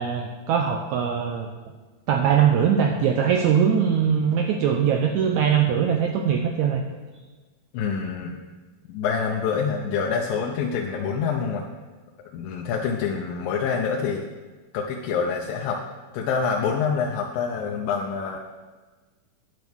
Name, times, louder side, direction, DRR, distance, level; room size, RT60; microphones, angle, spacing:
voice 1, 0.0-1.5 2.1-6.8, right 7 dB, 85° right, 3 dB, 1.7 m, -21 dB
voice 2, 7.7-8.4 8.9-11.6 12.3-14.2 14.7-15.8 16.1-18.4, left 6 dB, 80° left, 0 dB, 2.4 m, -26 dB
9.5 x 7.2 x 6.1 m, 1.3 s
omnidirectional pair, 4.0 m